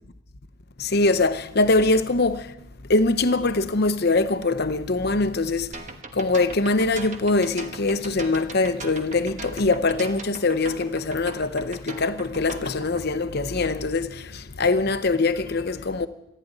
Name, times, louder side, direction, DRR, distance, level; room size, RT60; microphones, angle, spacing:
voice 1, 0.8-2.5 2.9-5.7 6.1-16.1, left 3 dB, 50° left, 0.8 m, -23 dB
sound 1, 5.7-13.0, right 3 dB, 35° right, 1.2 m, -39 dB
15.0 x 10.0 x 9.3 m
head